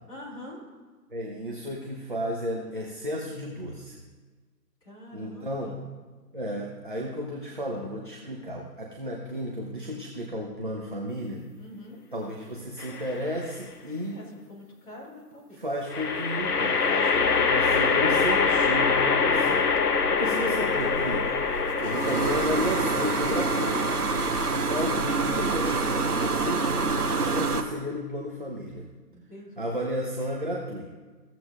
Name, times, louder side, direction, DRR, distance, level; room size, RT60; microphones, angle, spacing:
voice 1, 0.1-0.6 4.8-5.9 11.5-12.0 14.1-15.6 29.1-29.6, left 1 dB, 20° left, -8 dB, 2.2 m, -45 dB
voice 2, 1.1-4.0 5.1-5.7 6.3-11.4 12.1-14.2 15.5-19.7 20.2-21.3 21.8-26.7 26.9-28.9 29.6-30.9, equal, 30° right, -1 dB, 0.7 m, -33 dB
sound 1, 12.8-13.4 15.9-27.3, left 5 dB, 70° left, 0.8 m, -26 dB
sound 2, 18.2-27.6, right 4 dB, 65° right, 1.1 m, -28 dB
16.0 x 7.6 x 2.4 m, 1.3 s
figure-of-eight pair, 160°, 49 cm